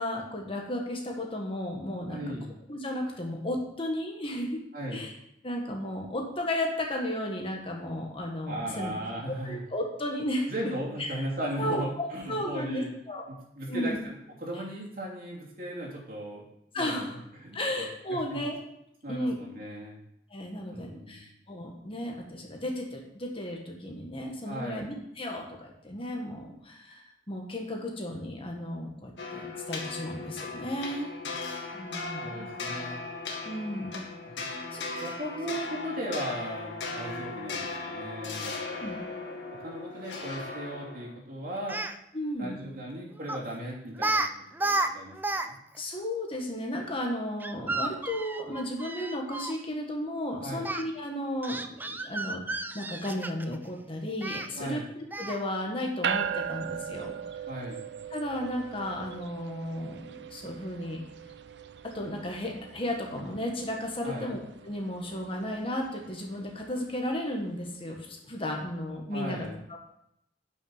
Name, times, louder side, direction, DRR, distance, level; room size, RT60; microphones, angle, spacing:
voice 1, 0.0-2.2 2.7-4.6 4.9-5.1 5.4-8.9 9.3-10.5 11.0-11.1 11.6-13.3 13.7-14.0 16.7-17.2 17.5-18.6 19.1-19.4 20.3-31.1 31.7-32.5 33.4-34.0 34.7-34.8 38.8-39.0 42.1-42.6 45.8-57.4 58.1-61.0 61.9-64.4 64.6-69.8, left 1 dB, 30° left, 1 dB, 1.6 m, -34 dB
voice 2, 2.1-2.5 4.7-5.1 8.5-9.6 10.5-12.9 13.3-14.1 14.4-16.4 16.7-17.9 18.3-18.4 19.0-20.0 20.7-21.3 24.4-24.8 32.2-33.0 34.2-34.3 35.0-38.9 39.6-41.8 42.4-44.2 44.6-45.5 50.4-50.7 54.5-54.9 57.5-57.8 64.0-64.3 69.1-69.5, right 1 dB, 55° right, -3 dB, 2.9 m, -37 dB
sound 1, 29.2-41.2, left 3 dB, 90° left, 1.8 m, -37 dB
Speech, 41.6-41.9 43.3-43.5 44.0-44.3 44.5-45.5 45.7-45.8 47.4-49.6 50.6-50.8 51.4-53.6 54.2-54.5 55.1-55.5, right 2 dB, 10° right, 0.4 m, -31 dB
sound 2, 56.0-67.6, right 8 dB, 75° right, 0.5 m, -39 dB
9.1 x 6.2 x 5.6 m, 0.78 s
head